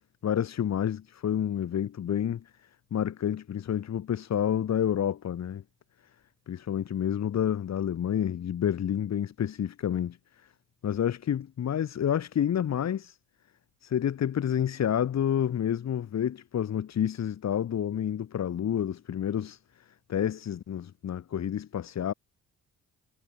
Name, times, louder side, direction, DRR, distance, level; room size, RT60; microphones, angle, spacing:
voice 1, 0.2-2.4 2.9-5.6 6.5-10.5 10.8-13.2 13.8-19.6 20.1-22.1, left 9 dB, 60° left, 5.0 m, -29 dB
cardioid pair, 90°, 30 cm